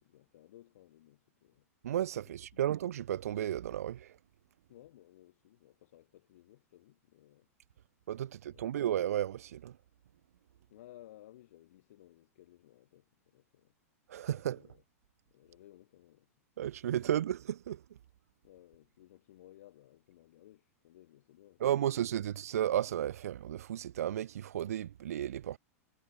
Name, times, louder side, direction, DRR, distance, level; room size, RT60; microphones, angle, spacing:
voice 1, 0.0-1.7 2.3-2.7 4.7-7.5 8.2-8.7 10.7-13.7 14.3-14.8 15.3-16.3 17.0-17.1 18.4-22.0, left 14 dB, 65° left, 4.8 m, -59 dB
voice 2, 1.8-4.2 8.1-9.8 14.1-14.6 16.6-17.8 21.6-25.6, right 11 dB, 75° right, 0.3 m, -33 dB
hypercardioid pair, 110°, 8 cm